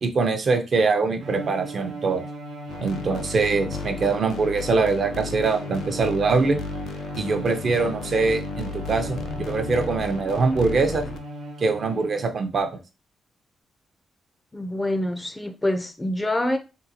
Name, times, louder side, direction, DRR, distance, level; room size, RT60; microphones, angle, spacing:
voice 1, 0.0-2.2 2.8-6.6 7.2-9.2 9.5-11.0 11.6-12.7, right 4 dB, 50° right, 0.6 m, -23 dB
Bowed string instrument, 1.2-12.4, right 1 dB, 85° right, 0.8 m, -37 dB
sound 1, 2.7-11.2, left 6 dB, 85° left, 0.3 m, -35 dB
voice 2, 14.5-16.6, left 1 dB, 15° left, 0.4 m, -26 dB
3.8 x 2.3 x 2.8 m
cardioid pair, 115°, 0 cm